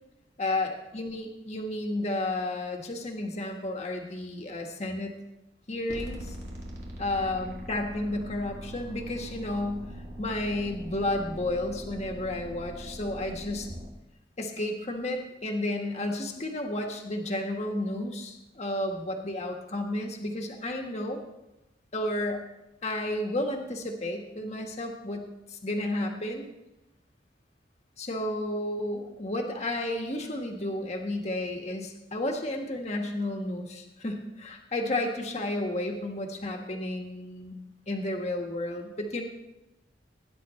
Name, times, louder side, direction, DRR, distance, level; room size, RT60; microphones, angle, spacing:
voice 1, 0.4-5.2 5.7-6.4 7.0-9.9 10.2-13.7 14.4-21.2 21.9-22.4 22.8-26.5 28.0-37.5 37.9-39.2, left 1 dB, 40° left, 2 dB, 1.6 m, -32 dB
sound 1, 5.9-13.9, equal, 80° right, 2.4 m, -42 dB
20.0 x 10.0 x 3.2 m, 0.96 s
head